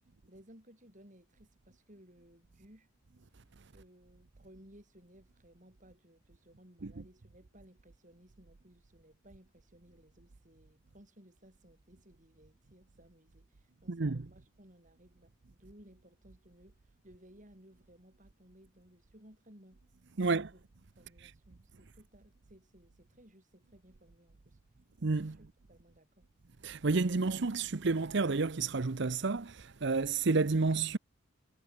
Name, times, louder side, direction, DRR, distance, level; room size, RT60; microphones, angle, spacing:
voice 1, 0.3-2.9 3.7-19.8 20.3-20.6 21.0-24.6 25.4-26.3, equal, 35° right, 7.3 m, -60 dB
voice 2, 13.9-14.3 20.2-20.5 21.2-21.3 25.0-25.4 26.6-31.0, right 3 dB, 55° right, 0.7 m, -30 dB
head